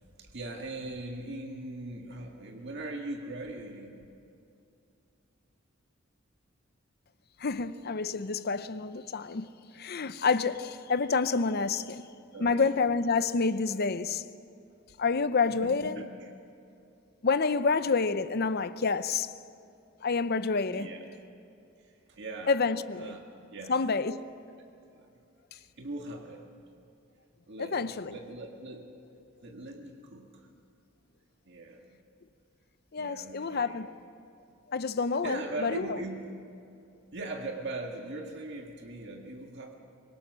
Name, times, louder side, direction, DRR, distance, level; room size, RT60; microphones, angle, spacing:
voice 1, 0.2-4.0 12.3-12.6 13.7-13.9 15.5-16.3 18.5-18.6 20.7-21.1 21.8-22.5 23.0-23.2 23.5-23.8 24.9-25.1 25.5-26.5 27.5-28.9 29.4-30.5 31.5-32.0 33.0-33.9 35.2-36.4 37.1-39.7, right 2 dB, 60° right, 1.8 m, -40 dB
voice 2, 7.4-12.1 12.4-14.2 15.0-16.0 17.2-19.3 20.0-20.9 22.5-23.2 23.7-24.2 27.6-28.1 32.9-33.9 34.7-36.0, left 4 dB, 50° left, 0.7 m, -28 dB
25.0 x 22.0 x 6.3 m
head